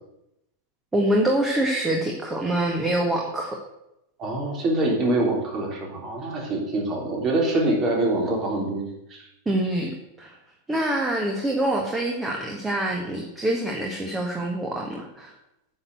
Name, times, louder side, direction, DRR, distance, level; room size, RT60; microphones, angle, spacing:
voice 1, 0.9-3.6 9.4-9.9 10.2-10.3 10.7-15.3, right 1 dB, 10° right, 1 dB, 1.5 m, -25 dB
voice 2, 4.2-8.9, right 2 dB, 30° right, 0 dB, 3.4 m, -24 dB
9.7 x 6.3 x 7.9 m, 0.86 s
figure-of-eight pair, 90°, 0 cm